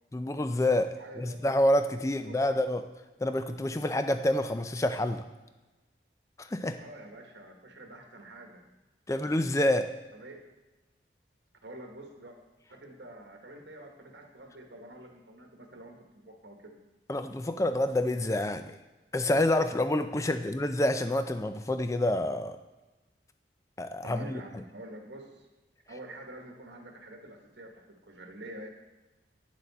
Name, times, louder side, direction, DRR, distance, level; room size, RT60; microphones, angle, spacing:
voice 1, 0.1-2.8 3.2-5.2 6.4-6.8 9.1-9.9 17.1-18.8 19.1-22.6 23.8-24.6, left 1 dB, 15° left, 9 dB, 0.4 m, -28 dB
voice 2, 1.0-1.4 2.1-2.6 6.7-8.7 10.1-10.4 11.6-12.4 12.7-16.8 20.2-20.3 24.0-25.5 25.9-28.7, right 1 dB, 75° right, 3 dB, 1.3 m, -47 dB
9.0 x 6.7 x 4.1 m, 1.1 s
head